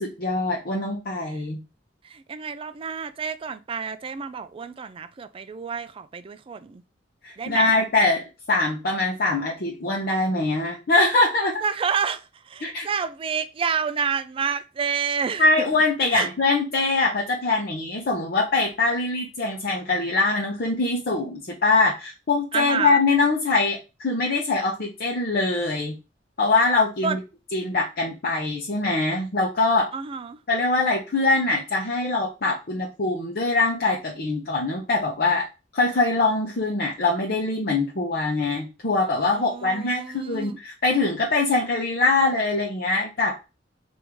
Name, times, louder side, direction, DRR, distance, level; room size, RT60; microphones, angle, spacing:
voice 1, 0.0-1.6 7.2-8.2 8.5-11.5 12.6-12.9 15.4-25.9 26.4-27.2 27.5-29.9 30.5-35.5 35.7-43.4, left 3 dB, 55° left, 0.8 m, -23 dB
voice 2, 2.0-6.8 7.4-7.7 11.6-15.5 16.1-16.3 22.5-23.0 27.0-27.2 29.9-30.4 39.3-40.6, right 6 dB, 30° right, 0.3 m, -29 dB
3.5 x 2.6 x 4.5 m
head